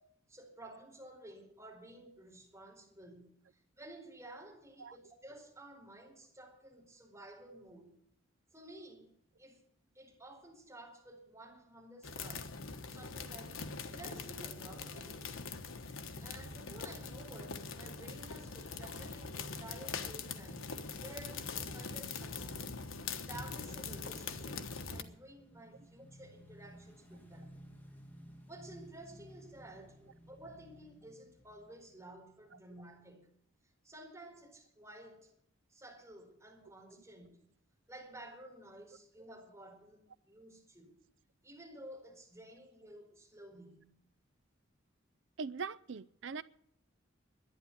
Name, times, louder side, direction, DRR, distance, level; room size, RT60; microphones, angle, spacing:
voice 1, 0.3-8.0 8.5-9.1 9.4-9.6 9.9-12.5 12.9-13.6 13.9-15.3 16.2-22.7 23.2-27.6 28.5-33.3 33.8-35.4 35.7-37.4 37.9-40.9 41.4-43.9, right 1 dB, 15° right, 4.7 m, -53 dB
sound 1, 12.0-25.0, left 4 dB, 90° left, 1.3 m, -43 dB
Motorcycle / Engine, 24.9-32.6, equal, 10° left, 1.9 m, -56 dB
voice 2, 45.4-46.4, right 5 dB, 65° right, 0.5 m, -41 dB
11.5 x 9.5 x 9.9 m
head